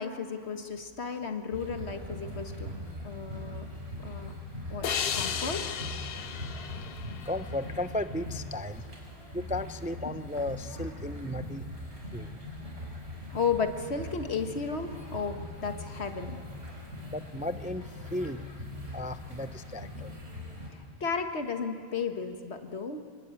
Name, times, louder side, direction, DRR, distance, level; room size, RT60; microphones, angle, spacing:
voice 1, 0.0-2.7 3.0-3.6 4.0-4.3 4.7-4.9 5.1-5.6 13.3-16.4 21.0-23.0, left 5 dB, 80° left, 6 dB, 1.8 m, -33 dB
sound 1, 1.5-20.7, left 1 dB, 80° right, 4.7 m, -41 dB
sound 2, 4.8-8.1, left 8 dB, 65° left, 1.0 m, -35 dB
voice 2, 7.2-8.9 9.3-11.7 12.1-12.4 17.1-18.7 18.9-20.1, left 1 dB, 10° right, 11 dB, 0.4 m, -35 dB
26.5 x 20.0 x 8.9 m, 2.2 s
omnidirectional pair, 1.1 m